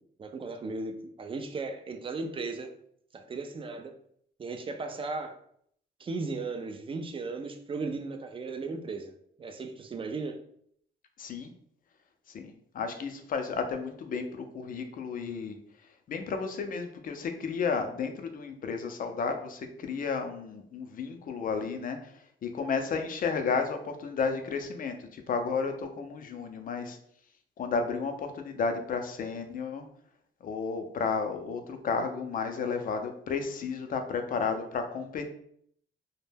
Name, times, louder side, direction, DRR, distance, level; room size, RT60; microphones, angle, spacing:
voice 1, 0.0-2.7 3.1-3.9 4.4-5.4 6.0-9.1 9.4-10.4, right 3 dB, 25° right, 6 dB, 0.4 m, -36 dB
voice 2, 11.2-11.5 12.3-15.6 16.1-22.1 22.4-27.0 27.6-29.9 30.4-35.3, left 5 dB, 45° left, 6 dB, 0.4 m, -32 dB
2.1 x 2.1 x 3.2 m, 0.67 s
cardioid pair, 90°, 20 cm